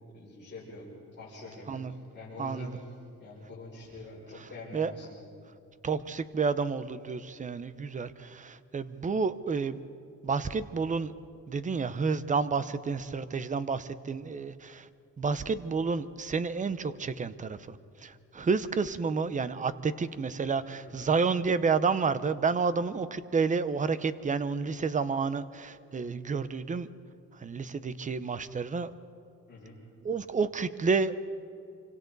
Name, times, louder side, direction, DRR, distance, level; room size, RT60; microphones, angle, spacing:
voice 1, 0.1-0.9 1.2-5.2 20.8-21.1 29.5-29.8, left 2 dB, 35° left, -8 dB, 5.8 m, -45 dB
voice 2, 2.4-2.8 4.4-4.9 5.8-9.8 10.2-11.1 11.5-14.9 15.2-17.8 18.0-26.9 27.4-28.9 30.0-31.1, right 5 dB, 25° right, 14 dB, 0.6 m, -30 dB
28.0 x 25.5 x 4.0 m, 2.6 s
wide cardioid pair, 170°, 31 cm